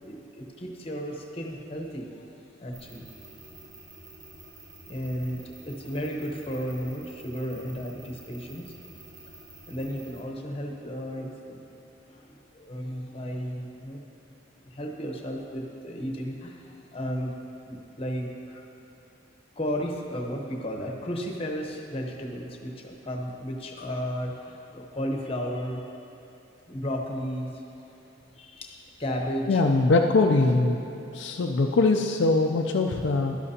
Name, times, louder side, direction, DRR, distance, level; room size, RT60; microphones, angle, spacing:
voice 1, 0.0-2.3 2.6-3.0 4.9-8.9 9.7-11.6 12.1-14.0 14.6-17.3 17.7-18.6 19.6-25.8 26.7-27.7 28.3-29.6 30.4-30.5, equal, 30° left, 1 dB, 0.8 m, -34 dB
sound 1, 2.7-10.2, right 2 dB, 60° right, 1.9 m, -49 dB
voice 2, 29.5-30.8 31.1-33.4, left 3 dB, 60° left, 2 dB, 0.4 m, -22 dB
12.0 x 11.0 x 2.8 m, 2.8 s
head